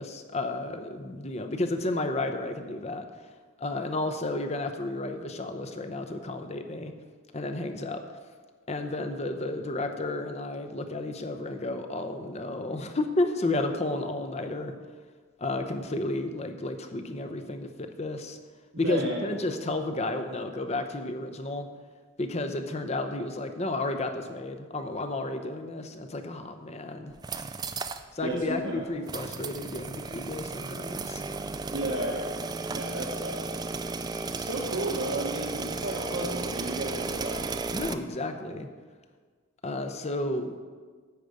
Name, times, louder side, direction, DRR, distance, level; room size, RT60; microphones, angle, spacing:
voice 1, 0.0-3.0 3.6-6.9 7.3-8.0 8.7-14.7 15.4-18.4 18.8-21.7 22.2-27.1 28.1-31.2 37.7-38.7 39.6-40.7, left 2 dB, 30° left, 7 dB, 0.7 m, -32 dB
voice 2, 18.8-19.3 28.2-28.9 31.7-33.5 34.3-37.5, right 1 dB, 65° right, -3 dB, 1.3 m, -33 dB
sound 1, 27.1-28.0 28.4-28.5 29.1-37.9, right 4 dB, 20° right, 0.3 m, -34 dB
10.5 x 5.1 x 7.9 m, 1.5 s
head